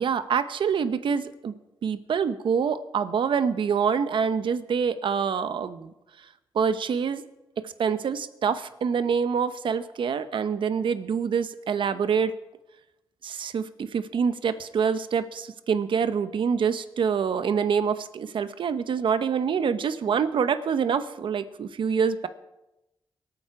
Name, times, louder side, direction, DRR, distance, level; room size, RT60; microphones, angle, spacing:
voice 1, 0.0-1.5 1.8-5.9 6.5-7.2 7.6-12.3 13.2-22.3, right 6 dB, 70° right, 12 dB, 0.9 m, -26 dB
24.5 x 9.0 x 4.8 m, 0.96 s
cardioid pair, 85°, 9 cm